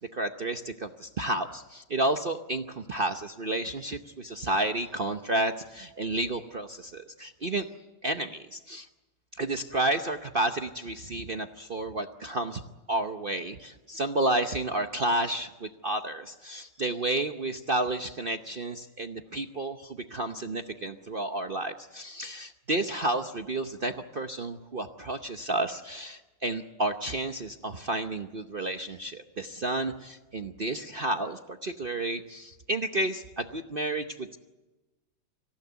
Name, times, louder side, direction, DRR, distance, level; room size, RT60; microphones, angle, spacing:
voice 1, 0.0-7.7 8.0-8.9 9.4-12.6 12.9-34.4, right 2 dB, 45° right, 7 dB, 0.7 m, -31 dB
26.0 x 16.0 x 9.4 m, 1.1 s
omnidirectional pair, 2.0 m